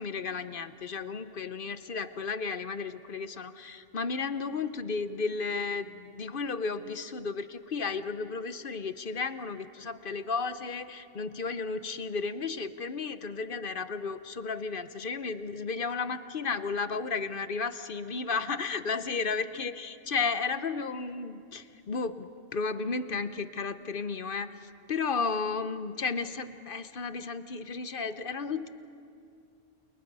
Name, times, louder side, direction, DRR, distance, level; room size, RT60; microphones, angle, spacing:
voice 1, 0.0-28.7, left 4 dB, 50° left, 12 dB, 0.9 m, -33 dB
29.5 x 29.0 x 5.4 m, 2.4 s
omnidirectional pair, 1.2 m